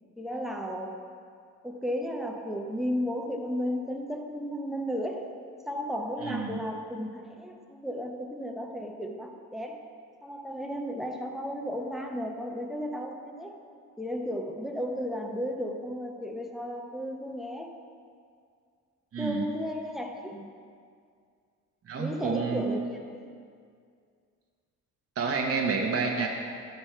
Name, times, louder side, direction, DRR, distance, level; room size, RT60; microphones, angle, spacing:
voice 1, 0.2-1.1 1.6-5.3 5.7-9.8 10.2-13.6 14.0-17.7 19.2-20.5 22.0-23.3, equal, ahead, 2 dB, 0.9 m, -34 dB
voice 2, 6.2-6.6 19.1-19.5 21.9-22.6 25.2-26.4, right 5 dB, 50° right, 0 dB, 0.9 m, -29 dB
12.0 x 4.3 x 4.5 m, 2.2 s
cardioid pair, 90°, 30 cm